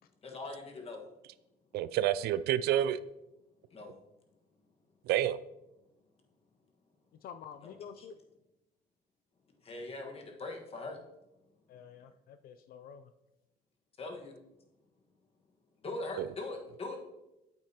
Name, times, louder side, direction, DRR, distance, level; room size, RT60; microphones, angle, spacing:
voice 1, 0.2-1.1 3.7-4.0 7.6-8.0 9.6-11.0 14.0-14.4 15.8-17.0, left 2 dB, 35° left, 2 dB, 1.5 m, -41 dB
voice 2, 1.7-3.0 5.1-5.4 16.2-16.3, right 12 dB, 70° right, 15 dB, 0.4 m, -28 dB
voice 3, 7.2-8.2 11.7-13.1, left 8 dB, 60° left, 10 dB, 0.5 m, -49 dB
8.7 x 8.1 x 2.9 m, 0.93 s
cardioid pair, 110°, 17 cm